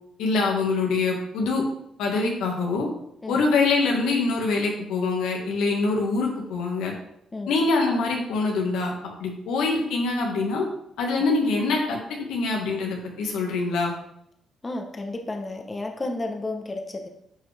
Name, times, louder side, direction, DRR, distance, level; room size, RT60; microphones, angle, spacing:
voice 1, 0.2-1.6 2.0-2.9 3.3-6.9 7.5-8.9 9.2-10.6 11.0-13.9, left 3 dB, 85° left, 0 dB, 1.8 m, -24 dB
voice 2, 14.6-17.1, left 2 dB, 25° left, 4 dB, 1.1 m, -32 dB
9.7 x 5.5 x 3.5 m, 0.75 s
cardioid pair, 90°, 0 cm